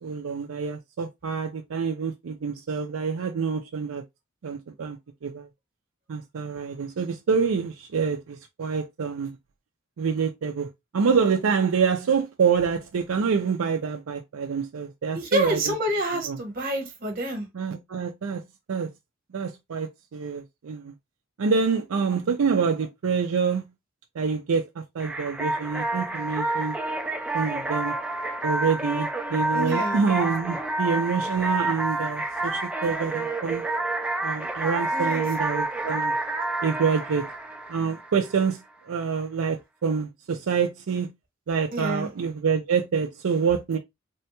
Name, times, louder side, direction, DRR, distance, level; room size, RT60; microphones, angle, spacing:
voice 1, 0.0-4.0 4.4-5.0 5.2-5.5 6.1-9.4 10.0-15.6 16.3-16.4 17.5-18.4 18.7-18.9 19.3-20.9 21.4-23.6 24.1-26.8 27.3-27.9 28.4-33.6 34.2-36.1 36.6-37.3 37.7-38.6 38.8-41.1 41.5-43.8, right 5 dB, 80° right, 0.4 m, -26 dB
voice 2, 15.1-17.5 29.5-30.0 34.9-35.2 41.7-42.1, right 1 dB, 45° right, 1.1 m, -28 dB
sound 1, 25.0-38.5, right 2 dB, 5° right, 0.5 m, -29 dB
3.4 x 2.2 x 2.7 m
head